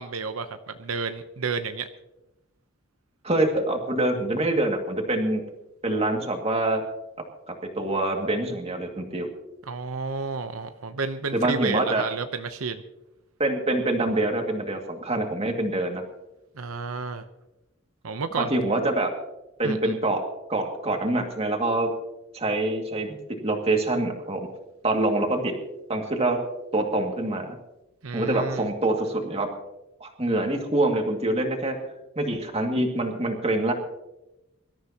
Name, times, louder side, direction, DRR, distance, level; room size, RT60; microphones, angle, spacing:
voice 1, 0.0-1.9 9.7-12.8 16.6-17.2 18.0-18.6 19.6-19.9 28.0-28.7, right 4 dB, 85° right, 9 dB, 0.8 m, -31 dB
voice 2, 3.2-5.4 5.8-6.8 7.8-9.3 11.3-12.0 13.4-16.0 18.4-19.1 19.6-20.2 20.5-21.9 22.3-24.5 24.8-25.5 25.9-26.4 26.7-27.6 28.1-29.5 30.0-31.8 32.2-33.7, right 2 dB, 30° right, 3 dB, 2.1 m, -25 dB
24.0 x 13.0 x 2.9 m, 0.95 s
head